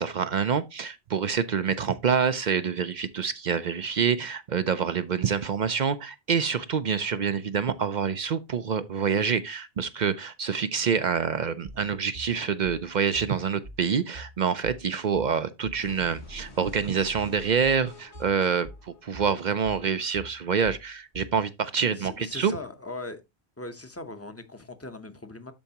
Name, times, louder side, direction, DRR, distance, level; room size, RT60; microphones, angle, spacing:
voice 1, 0.0-22.5, right 6 dB, 55° right, 0.6 m, -26 dB
sound 1, 11.7-21.4, right 1 dB, 85° right, 2.9 m, -45 dB
sound 2, 15.8-19.8, left 1 dB, 90° left, 2.7 m, -48 dB
voice 2, 21.8-23.2 23.6-25.5, left 2 dB, 15° left, 0.8 m, -39 dB
12.5 x 4.7 x 2.8 m
omnidirectional pair, 1.1 m